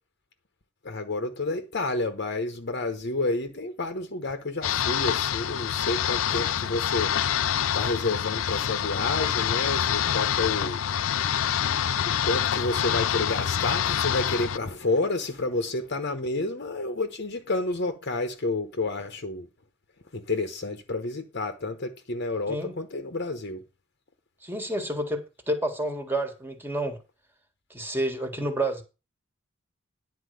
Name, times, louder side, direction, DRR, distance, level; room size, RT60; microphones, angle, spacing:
voice 1, 0.8-7.1 7.7-10.8 12.0-19.5 20.1-23.6, left 2 dB, 55° left, 1.0 m, -30 dB
sound 1, 4.6-14.6, left 9 dB, 75° left, 0.5 m, -26 dB
voice 2, 24.4-27.0 27.7-28.8, right 1 dB, 10° right, 1.7 m, -29 dB
10.5 x 4.5 x 7.9 m
head